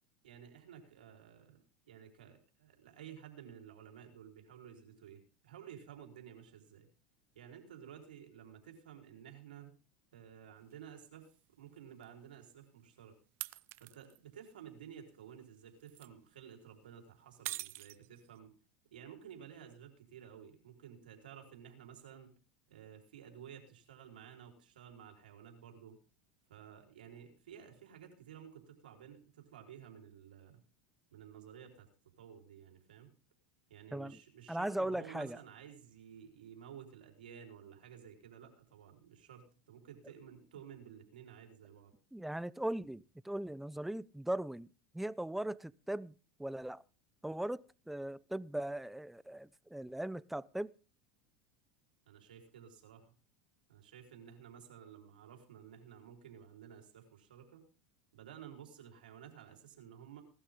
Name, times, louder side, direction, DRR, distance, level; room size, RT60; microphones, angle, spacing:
voice 1, 0.2-6.9 7.3-9.7 10.1-11.3 11.6-13.1 13.8-18.5 18.9-22.3 22.7-26.0 26.5-30.6 31.1-31.9 32.2-33.1 33.7-41.9 52.1-53.1 53.7-57.6 58.1-60.2, right 8 dB, 85° right, 4.5 m, -53 dB
sound 1, 10.7-10.8 12.0-12.1 13.4-14.2 15.7-16.1 17.5-18.4, right 18 dB, 55° right, 0.6 m, -44 dB
voice 2, 34.5-35.4 42.1-44.7 44.9-46.1 46.4-46.8 47.2-50.7, right 1 dB, 5° right, 0.6 m, -39 dB
18.5 x 12.5 x 3.8 m
hypercardioid pair, 100°, 5 cm